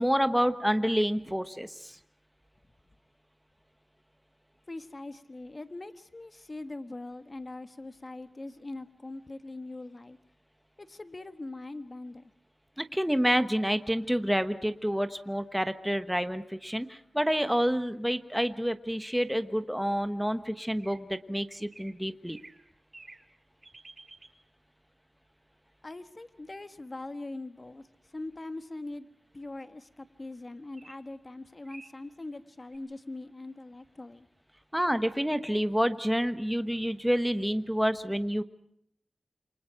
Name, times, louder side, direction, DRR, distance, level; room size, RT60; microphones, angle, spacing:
voice 1, 0.0-2.0 12.8-22.4 34.7-38.4, equal, 5° right, 10 dB, 1.2 m, -28 dB
voice 2, 4.7-10.2 10.8-12.3 25.8-27.8 28.1-29.1 29.3-34.3, left 2 dB, 35° left, 10 dB, 1.4 m, -42 dB
sound 1, 20.8-21.0 21.7-21.9 22.3-22.7 22.9-23.3 23.6-24.3 30.7-30.9 31.3-31.4 31.6-31.9 32.7-32.8, right 2 dB, 40° right, 3.4 m, -50 dB
28.0 x 25.0 x 5.9 m, 0.71 s
wide cardioid pair, 75°, 0 cm